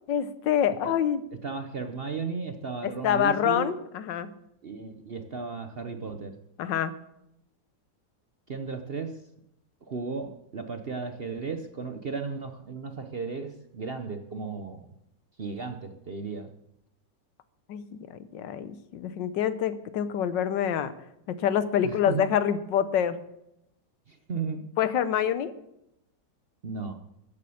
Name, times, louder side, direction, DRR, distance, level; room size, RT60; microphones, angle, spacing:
voice 1, 0.1-1.2 3.0-4.3 6.6-6.9 17.7-18.1 18.3-20.9 21.3-23.2 24.8-25.5, left 9 dB, 80° left, 14 dB, 1.5 m, -26 dB
voice 2, 1.4-3.7 4.6-6.3 8.5-9.2 9.9-14.8 15.4-16.5 21.8-22.2 24.1-24.6 26.6-27.0, right 5 dB, 50° right, 7 dB, 0.7 m, -35 dB
14.0 x 8.5 x 7.0 m, 0.82 s
omnidirectional pair, 1.9 m